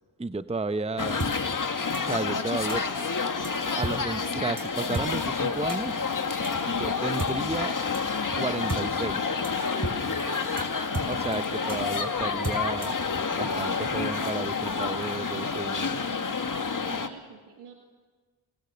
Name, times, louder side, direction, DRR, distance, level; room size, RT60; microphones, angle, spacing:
voice 1, 0.2-1.2 2.0-2.8 3.7-6.1 6.6-7.7 8.4-9.3 11.1-13.0 13.3-16.0, right 3 dB, 15° right, 12 dB, 0.8 m, -32 dB
sound 1, 1.0-17.1, left 5 dB, 40° left, 1.9 m, -29 dB
sound 2, 1.2-1.3 1.9-2.0 2.7-2.8 3.4-3.5 3.8-4.2 4.6-4.7 4.9-5.1 5.7-5.8 6.4-6.5 7.2-7.3 7.9-8.0 8.3-8.4 8.7-8.8 9.1-9.2 9.4-9.5 9.8-9.9 10.2-10.3 10.6-10.7 10.9-11.4 11.7-11.8 12.4-13.0, right 2 dB, 30° right, 5.2 m, -32 dB
voice 2, 9.8-10.6 16.8-17.7, right 7 dB, 85° right, 2 dB, 2.2 m, -48 dB
27.0 x 21.5 x 6.9 m, 1.4 s
supercardioid pair, 40°, 49 cm